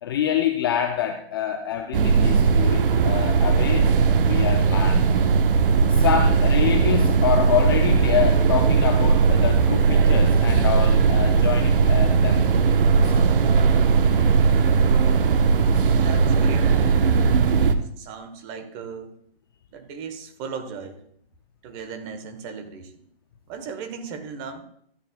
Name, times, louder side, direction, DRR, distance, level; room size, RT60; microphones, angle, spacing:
voice 1, 0.0-5.1 5.9-12.5 13.0-13.3, left 9 dB, 25° left, 6 dB, 0.4 m, -26 dB
sound 1, 1.9-17.7, right 5 dB, 60° right, 1.0 m, -18 dB
voice 2, 16.0-17.0 17.5-19.2 19.7-21.0 21.6-23.0 23.5-24.6, right 5 dB, 25° right, 8 dB, 1.0 m, -37 dB
13.0 x 8.9 x 2.2 m, 0.66 s
hypercardioid pair, 150°, 31 cm